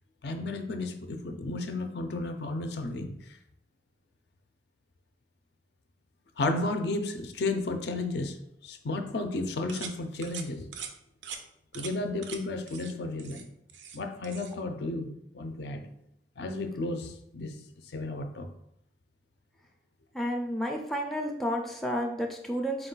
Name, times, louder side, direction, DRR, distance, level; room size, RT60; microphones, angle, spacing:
voice 1, 0.2-3.1 6.4-10.7 11.7-13.5 13.9-15.9 16.4-17.6 17.9-18.5, left 2 dB, 65° left, 6 dB, 0.4 m, -33 dB
sound 1, 9.7-10.0 10.2-10.5 10.7-10.9 11.2-11.4 11.7-11.9 12.2-12.4 12.7-12.9 13.2-14.0 14.2-14.5, right 7 dB, 80° right, 0.4 m, -41 dB
voice 2, 20.1-22.9, equal, ahead, 0 dB, 0.3 m, -31 dB
4.4 x 2.2 x 3.9 m, 0.75 s
head